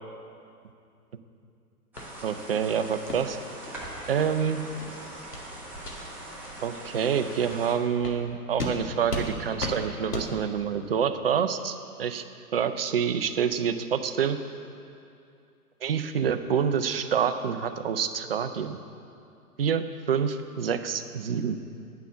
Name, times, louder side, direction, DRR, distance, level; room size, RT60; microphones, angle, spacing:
sound 1, 1.9-7.7, right 1 dB, 5° right, 1.0 m, -42 dB
sound 2, 2.0-2.1 2.5-2.6 3.1-3.2 3.6-3.7 4.2-4.3 4.7-4.9 5.3-5.5 5.8-6.0 6.4-6.5 7.0-7.1 7.5-7.6 8.0-8.2 8.6-8.7 9.1-9.3 9.6-9.8 10.1-10.3, left 1 dB, 80° left, 1.8 m, -34 dB
voice 1, 2.2-3.4 4.1-4.6 6.6-12.2 12.5-14.4 15.8-18.8 19.6-21.6, right 7 dB, 40° right, 9 dB, 0.5 m, -27 dB
9.0 x 5.8 x 7.9 m, 2.5 s
figure-of-eight pair, 125°, 46 cm